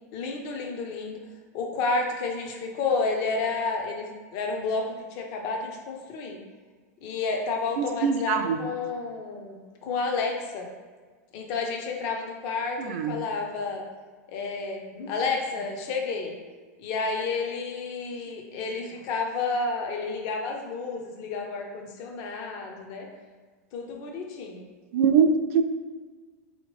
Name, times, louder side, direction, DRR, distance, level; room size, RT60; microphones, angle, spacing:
voice 1, 0.1-1.2 1.5-6.4 7.0-10.7 11.3-13.8 14.3-16.4 16.8-23.1 23.7-24.7, left 4 dB, 40° left, 2 dB, 0.5 m, -30 dB
voice 2, 7.8-8.6 12.9-13.1 24.9-25.6, right 6 dB, 55° right, 7 dB, 0.3 m, -22 dB
3.5 x 2.8 x 3.1 m, 1.5 s
supercardioid pair, 155°, 9 cm